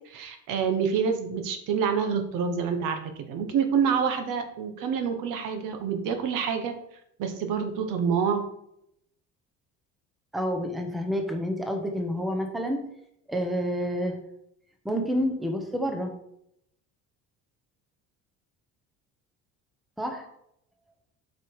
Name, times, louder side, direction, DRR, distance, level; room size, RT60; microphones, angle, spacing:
voice 1, 0.1-6.7 7.2-8.4, right 6 dB, 80° right, 7 dB, 1.3 m, -27 dB
voice 2, 10.3-12.8 13.3-14.2 14.8-16.1 20.0-20.3, equal, ahead, 3 dB, 0.9 m, -28 dB
8.2 x 5.2 x 4.8 m, 0.76 s
cardioid pair, 150°, 31 cm